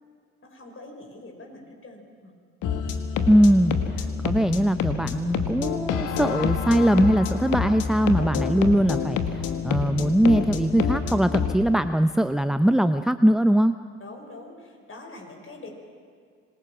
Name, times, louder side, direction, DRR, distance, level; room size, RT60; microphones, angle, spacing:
voice 1, 0.4-2.3 8.2-8.7 14.0-15.7, left 2 dB, 40° left, 2 dB, 6.0 m, -43 dB
sound 1, 2.6-11.6, left 6 dB, 65° left, 1.8 m, -27 dB
voice 2, 3.3-13.7, right 1 dB, ahead, 10 dB, 0.7 m, -21 dB
26.0 x 20.0 x 6.1 m, 2.3 s
hypercardioid pair, 55°, 33 cm